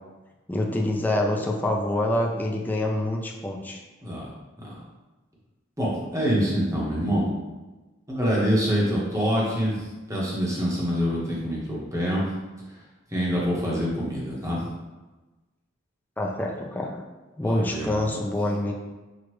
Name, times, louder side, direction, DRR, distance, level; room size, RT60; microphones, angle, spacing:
voice 1, 0.5-3.8 16.2-17.0 17.4-18.7, left 1 dB, 10° left, 0 dB, 0.4 m, -26 dB
voice 2, 5.8-7.3 8.1-12.3 13.1-14.7 17.4-18.2, equal, 15° right, -5 dB, 1.1 m, -26 dB
6.0 x 2.4 x 3.1 m, 1.2 s
head